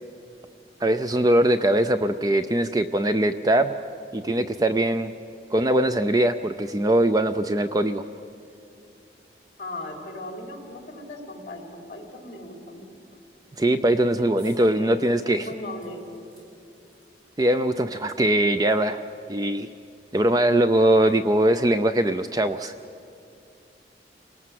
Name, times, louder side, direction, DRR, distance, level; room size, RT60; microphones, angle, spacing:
voice 1, 0.8-3.8 4.1-5.1 5.5-8.0 13.6-15.5 17.4-19.0 19.3-19.7 20.1-22.7, right 1 dB, 20° right, 10 dB, 0.5 m, -21 dB
voice 2, 9.6-12.9 14.1-15.0 15.3-16.1, left 1 dB, 35° left, 1 dB, 4.2 m, -38 dB
sound 1, 14.4-14.7 15.1-15.2 15.8-17.5 18.3-18.4 18.7-18.8, right 1 dB, 60° right, 7.9 m, -57 dB
28.5 x 19.0 x 7.6 m, 2.5 s
head